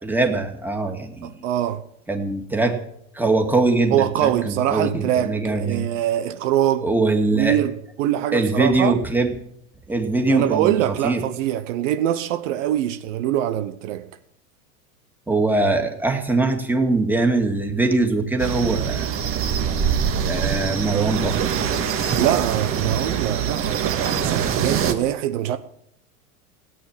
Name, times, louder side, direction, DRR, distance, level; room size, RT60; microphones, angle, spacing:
voice 1, 0.0-1.3 2.1-2.8 3.1-5.9 6.8-7.6 8.3-9.3 9.9-10.7 11.0-11.2 15.3-19.1 20.3-21.4, right 3 dB, 5° right, 2.3 m, -22 dB
voice 2, 1.2-1.8 3.9-6.9 7.3-9.0 10.3-14.1 22.2-25.6, right 12 dB, 60° right, 1.1 m, -23 dB
sound 1, 18.4-24.9, right 7 dB, 30° right, 1.8 m, -23 dB
17.5 x 9.1 x 7.4 m
supercardioid pair, 125°, 43 cm